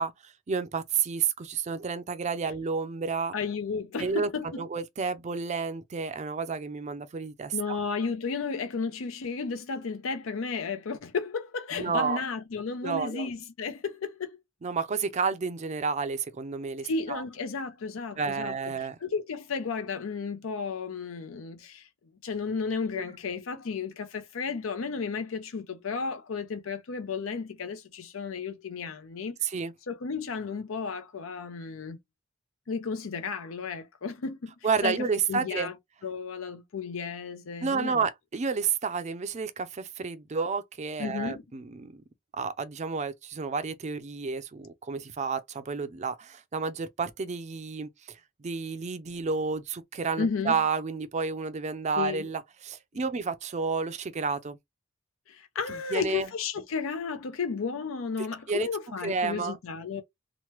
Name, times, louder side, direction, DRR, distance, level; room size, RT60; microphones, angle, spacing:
voice 1, 0.0-3.3 4.0-7.8 11.8-12.2 12.8-13.3 14.6-17.2 18.2-19.0 29.4-29.7 34.6-35.7 37.6-42.0 42.3-48.2 48.4-54.6 55.9-56.3 58.5-58.7 59.0-59.6, right 5 dB, 35° right, 0.4 m, -30 dB
voice 2, 3.3-4.7 7.5-14.4 16.8-18.7 19.0-21.9 22.2-29.4 29.9-32.0 32.7-34.5 34.8-35.7 36.0-38.0 41.0-41.4 50.2-50.6 52.0-52.3 55.3-60.0, left 5 dB, 90° left, 0.5 m, -33 dB
3.0 x 2.1 x 2.9 m
head